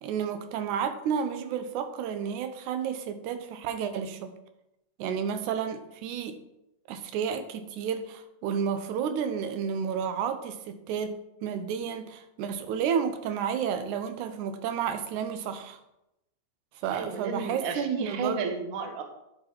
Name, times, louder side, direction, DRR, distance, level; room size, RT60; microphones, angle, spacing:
voice 1, 0.0-4.3 5.0-6.4 6.9-15.8 16.8-18.5, right 7 dB, 90° right, 2.2 m, -31 dB
voice 2, 16.9-19.0, right 4 dB, 60° right, 1.3 m, -32 dB
10.5 x 5.5 x 4.4 m
omnidirectional pair, 3.4 m